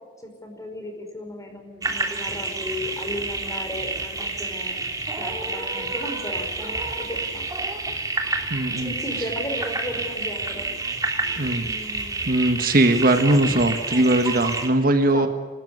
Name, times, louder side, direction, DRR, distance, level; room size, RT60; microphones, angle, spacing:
voice 1, 0.2-4.8 5.1-7.4 8.7-10.7 11.3-12.3 13.1-13.4 13.7-14.1 15.1-15.3, left 1 dB, 15° left, 4 dB, 5.0 m, -35 dB
sound 1, 1.8-14.7, right 3 dB, 20° right, 2.9 m, -29 dB
voice 2, 8.5-8.9 11.4-11.7 12.2-15.3, right 1 dB, 50° right, 7 dB, 1.6 m, -20 dB
27.5 x 13.5 x 9.6 m, 1.3 s
head